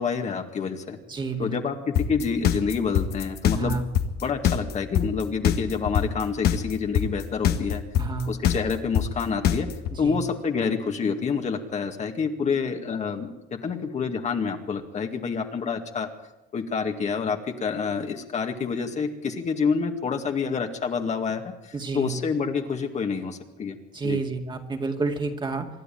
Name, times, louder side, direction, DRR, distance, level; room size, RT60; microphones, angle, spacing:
voice 1, 0.0-1.0 1.4-3.8 4.2-7.8 8.3-9.7 10.0-16.1 16.5-23.8 24.0-24.2, left 5 dB, 45° left, 4 dB, 2.1 m, -28 dB
voice 2, 1.1-1.5 3.5-3.8 8.0-8.3 9.9-10.2 21.7-22.1 23.9-25.7, right 4 dB, 25° right, 3 dB, 2.3 m, -29 dB
sound 1, 1.9-9.9, left 10 dB, 70° left, 1.7 m, -22 dB
26.0 x 11.0 x 9.3 m, 1.0 s
cardioid pair, 110°, 17 cm